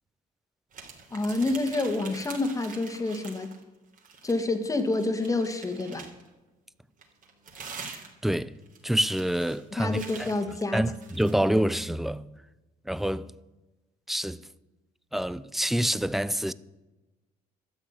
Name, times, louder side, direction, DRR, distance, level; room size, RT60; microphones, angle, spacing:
sound 1, 0.7-3.6 3.9-6.3 7.0-11.4, right 5 dB, 50° right, 3.4 m, -45 dB
voice 1, 1.1-3.5 4.2-6.1 9.8-10.9, left 2 dB, 20° left, 1.9 m, -28 dB
voice 2, 8.2-8.6 8.8-10.3 10.7-12.3 12.9-13.3 14.1-14.4 15.1-16.5, right 1 dB, ahead, 0.5 m, -27 dB
13.0 x 7.2 x 9.8 m
cardioid pair, 110°, 17 cm